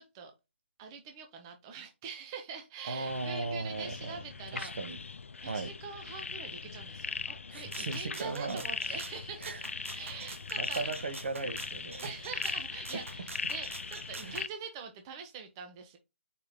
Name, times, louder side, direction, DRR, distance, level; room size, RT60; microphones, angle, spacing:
voice 1, 0.8-4.7 5.4-10.9 12.0-16.0, right 6 dB, 20° right, 0.5 m, -44 dB
voice 2, 2.9-4.2 4.5-5.0 5.4-5.7 7.5-9.0 9.4-9.6 10.6-12.1 12.9-13.0 14.2-14.4, right 3 dB, 60° right, 1.0 m, -37 dB
sound 1, 3.1-14.5, left 4 dB, 85° left, 0.4 m, -40 dB
Rattle (instrument), 7.7-14.5, right 3 dB, 85° right, 0.8 m, -47 dB
4.4 x 3.7 x 2.6 m
hypercardioid pair, 160°, 7 cm